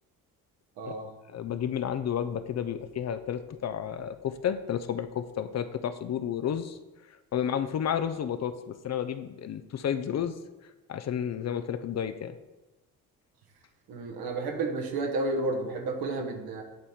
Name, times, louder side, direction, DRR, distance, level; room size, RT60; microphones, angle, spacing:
voice 1, 0.8-1.1 13.9-16.6, right 2 dB, 75° right, 2 dB, 1.3 m, -31 dB
voice 2, 1.3-6.8 7.3-10.4 10.9-12.3, left 9 dB, 45° left, 11 dB, 0.5 m, -31 dB
10.0 x 3.5 x 4.3 m, 1.1 s
supercardioid pair, 70°, 37 cm